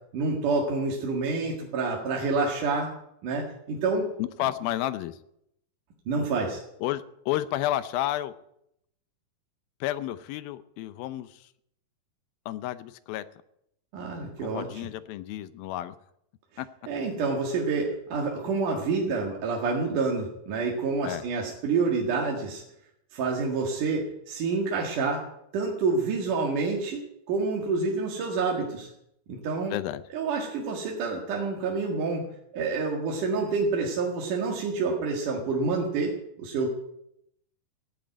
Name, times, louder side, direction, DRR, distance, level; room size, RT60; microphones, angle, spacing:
voice 1, 0.1-2.9 3.2-4.1 6.1-6.6 13.9-14.7 16.8-22.6 23.1-25.2 25.5-28.9 29.3-29.7 30.1-32.3 32.5-36.7, right 4 dB, 60° right, 0 dB, 3.3 m, -28 dB
voice 2, 4.2-5.2 6.8-8.3 9.8-11.4 12.5-13.3 14.4-16.0 16.6-16.7 21.0-21.3 29.7-30.0, left 14 dB, 80° left, 14 dB, 2.6 m, -31 dB
16.0 x 9.3 x 9.2 m, 0.77 s
omnidirectional pair, 4.2 m